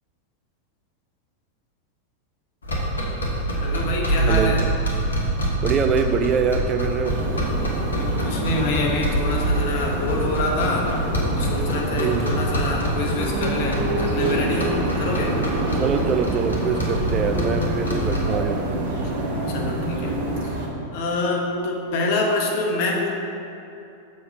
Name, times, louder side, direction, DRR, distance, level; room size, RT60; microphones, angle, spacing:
sound 1, 2.6-18.4, right 1 dB, 70° left, 1.2 m, -26 dB
voice 1, 3.6-4.6 7.9-10.9 11.3-15.4 19.5-20.1 20.4-20.5 20.9-23.1, left 2 dB, 50° left, 0 dB, 1.1 m, -26 dB
voice 2, 4.2-4.6 5.6-7.2 12.0-12.3 15.7-18.6, right 6 dB, 30° right, 7 dB, 0.3 m, -24 dB
sound 2, 7.1-20.7, right 1 dB, 45° right, 1.1 m, -27 dB
7.1 x 4.2 x 5.5 m, 2.7 s
figure-of-eight pair, 90°, 0 cm